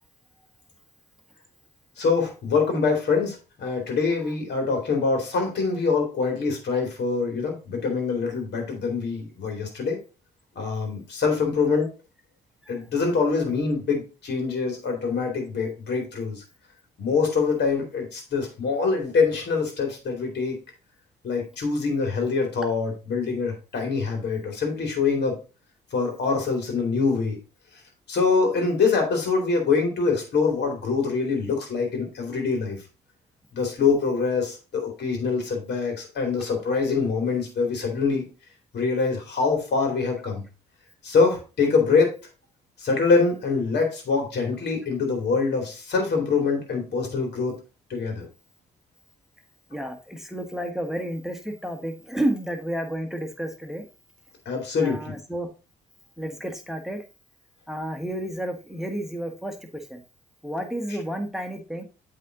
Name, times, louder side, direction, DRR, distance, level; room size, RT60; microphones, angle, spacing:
voice 1, 2.0-10.0 10.6-11.9 12.7-16.4 17.0-20.6 21.2-25.3 25.9-27.4 28.1-32.8 33.5-38.2 38.7-40.4 41.0-42.1 42.8-47.5 47.9-48.3 54.5-55.1, left 4 dB, 55° left, 2 dB, 2.8 m, -24 dB
voice 2, 49.7-53.8 54.8-55.5 56.2-57.0 57.7-60.0 60.4-61.8, right 1 dB, ahead, 4 dB, 1.5 m, -31 dB
8.3 x 3.9 x 4.0 m, 0.32 s
hypercardioid pair, 45°, 20 cm